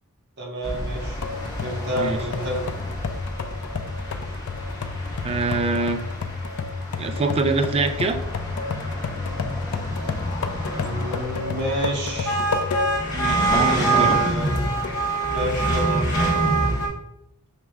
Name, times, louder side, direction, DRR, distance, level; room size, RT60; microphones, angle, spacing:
voice 1, 0.4-1.2 1.6-2.7 10.8-12.5 13.5-14.7 15.3-16.7, equal, 50° right, -3 dB, 1.2 m, -29 dB
sound 1, 0.6-16.9, right 2 dB, 20° left, 1.2 m, -27 dB
sound 2, 1.2-13.1 13.6-13.7 14.5-15.0, left 4 dB, 70° left, 0.4 m, -31 dB
voice 2, 5.2-6.0 7.0-8.2 13.1-14.1, right 3 dB, 25° right, 7 dB, 0.4 m, -24 dB
6.2 x 3.1 x 2.4 m, 0.83 s
head